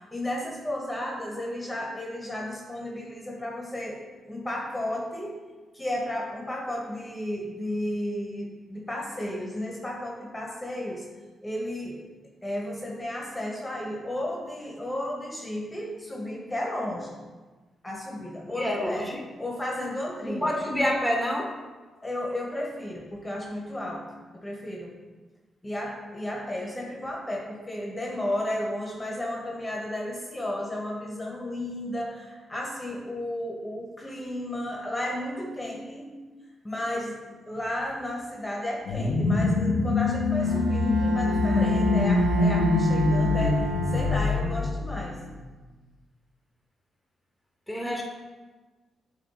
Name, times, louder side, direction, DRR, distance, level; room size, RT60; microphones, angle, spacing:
voice 1, 0.1-5.4 5.7-11.0 11.4-12.1 12.4-17.2 17.8-19.0 19.4-20.5 22.0-24.0 24.3-24.9 25.6-36.1 36.6-43.6 43.9-45.2, left 1 dB, 20° left, -1 dB, 1.3 m, -33 dB
voice 2, 18.4-19.2 20.2-21.5 47.7-48.0, left 1 dB, ahead, 0 dB, 1.4 m, -27 dB
sound 1, 38.8-45.3, left 3 dB, 80° left, 0.7 m, -24 dB
Bowed string instrument, 40.4-45.0, right 1 dB, 75° right, 1.1 m, -32 dB
7.4 x 3.0 x 4.3 m, 1.3 s
supercardioid pair, 50°, 0 cm